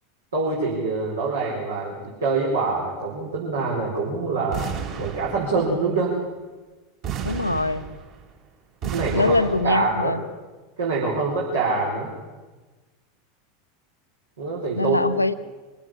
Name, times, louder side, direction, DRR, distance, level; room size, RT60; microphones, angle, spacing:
voice 1, 0.3-4.6 5.0-6.1 8.9-9.3 9.6-10.2 10.8-12.1 14.4-15.0, right 3 dB, 70° right, -4 dB, 5.1 m, -25 dB
sound 1, 4.5-5.8 7.0-8.3 8.8-9.9, right 8 dB, 45° right, 4.0 m, -32 dB
voice 2, 7.2-7.8 8.9-10.2 14.8-15.3, left 2 dB, 85° left, 12 dB, 0.9 m, -23 dB
26.0 x 16.0 x 7.5 m, 1.3 s
figure-of-eight pair, 85°, 0 cm